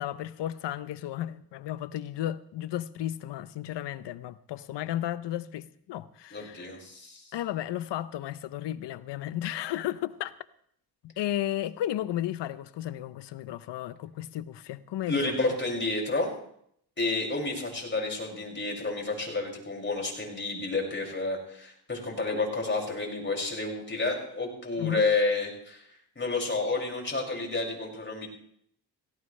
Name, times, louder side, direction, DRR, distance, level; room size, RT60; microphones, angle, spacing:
voice 1, 0.0-6.8 7.3-10.3 11.0-15.3 24.8-25.1, left 12 dB, 85° left, 0.8 m, -34 dB
voice 2, 6.3-7.2 15.1-16.3 17.0-25.8 26.2-28.3, left 3 dB, 25° left, 5.9 m, -30 dB
17.5 x 17.0 x 3.3 m
cardioid pair, 80°, 41 cm